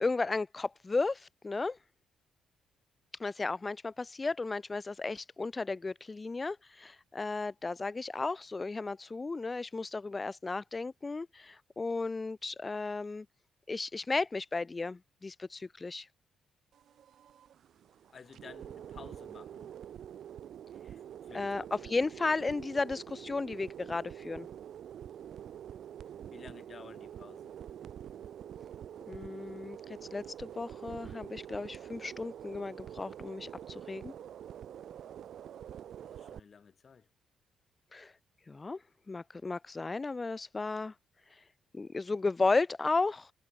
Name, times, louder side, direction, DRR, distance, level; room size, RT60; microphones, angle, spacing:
voice 1, 0.0-1.8 3.2-13.3 13.7-16.1 21.3-24.5 29.1-29.8 30.1-34.1 37.9-38.1 38.5-38.8 39.1-40.9 41.7-43.3, left 3 dB, 25° left, 0.4 m, -34 dB
sound 1, 16.7-36.4, right 10 dB, 65° right, 1.4 m, -46 dB
voice 2, 18.1-19.7 20.9-21.9 26.3-27.5 36.0-37.1, left 6 dB, 45° left, 2.4 m, -53 dB
cardioid pair, 90°, 0 cm